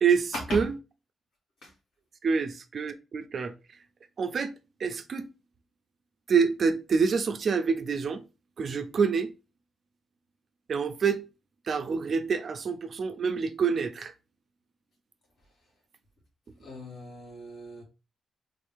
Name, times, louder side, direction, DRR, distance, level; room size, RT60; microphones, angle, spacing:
voice 1, 0.0-0.8 2.2-3.5 4.2-4.5 4.8-5.3 6.3-8.2 8.6-9.3 10.7-11.3 11.7-14.1, right 5 dB, 45° right, 0.5 m, -27 dB
voice 2, 16.6-17.8, left 1 dB, 70° left, 1.8 m, -39 dB
3.6 x 2.7 x 3.4 m
wide cardioid pair, 160°, 0 cm